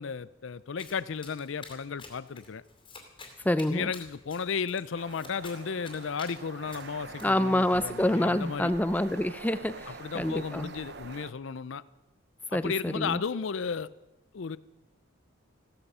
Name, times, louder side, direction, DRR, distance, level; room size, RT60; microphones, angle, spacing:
voice 1, 0.0-2.6 3.7-8.7 9.9-11.8 12.5-13.9 14.3-14.6, left 6 dB, 65° left, 17 dB, 0.5 m, -34 dB
Domestic sounds home sounds, 0.8-7.2, left 3 dB, 25° left, 2.5 m, -50 dB
voice 2, 3.4-3.9 7.2-10.7 12.5-13.2, left 1 dB, 10° left, 12 dB, 0.5 m, -27 dB
sound 1, 5.0-11.3, right 4 dB, 55° right, 0.8 m, -45 dB
15.5 x 13.5 x 5.6 m, 0.98 s
head